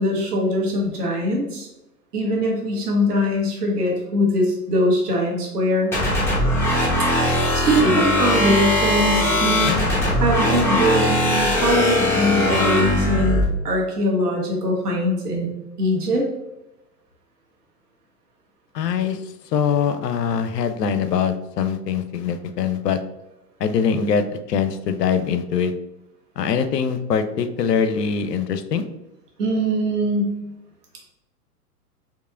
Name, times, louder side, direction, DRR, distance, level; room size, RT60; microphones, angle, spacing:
voice 1, 0.0-1.7 2.1-6.0 7.2-15.5 15.8-16.2 29.4-30.3, equal, 70° right, -1 dB, 1.4 m, -22 dB
sound 1, 5.9-13.4, left 1 dB, 5° left, 0.8 m, -20 dB
voice 2, 18.7-19.2 19.5-23.0 23.6-25.7 26.4-28.8, left 7 dB, 80° left, 9 dB, 0.6 m, -23 dB
4.6 x 2.8 x 2.4 m, 0.95 s
figure-of-eight pair, 105°, 48 cm